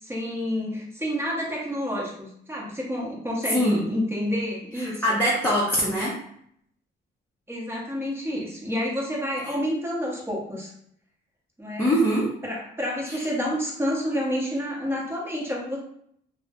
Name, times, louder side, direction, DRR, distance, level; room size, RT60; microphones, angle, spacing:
voice 1, 0.0-5.1 7.5-10.7 11.6-11.9 12.4-15.8, equal, 10° right, -4 dB, 1.0 m, -29 dB
voice 2, 3.5-3.9 5.0-6.2 11.8-12.3 13.1-13.2, equal, 10° left, -7 dB, 0.7 m, -22 dB
2.3 x 2.1 x 3.5 m, 0.68 s
cardioid pair, 90°, 20 cm